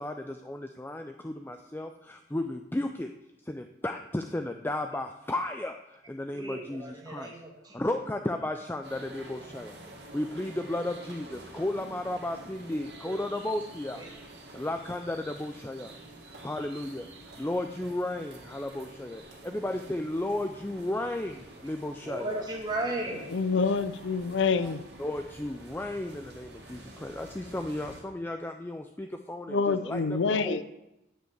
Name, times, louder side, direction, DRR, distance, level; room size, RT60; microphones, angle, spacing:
voice 1, 0.0-3.1 3.5-5.8 6.1-7.3 7.7-9.8 10.1-14.0 14.5-15.9 16.4-17.1 17.4-22.4 24.6-24.7 25.0-30.6, left 1 dB, 10° left, 6 dB, 0.4 m, -34 dB
voice 2, 6.3-7.8 13.1-13.3 14.0-14.1 22.1-23.3, right 1 dB, 20° right, -1 dB, 1.9 m, -35 dB
sound 1, 8.8-28.0, right 1 dB, 60° right, 2.5 m, -48 dB
voice 3, 23.3-24.8 29.5-30.6, left 4 dB, 80° left, 13 dB, 0.5 m, -27 dB
8.9 x 5.4 x 7.9 m, 0.90 s
head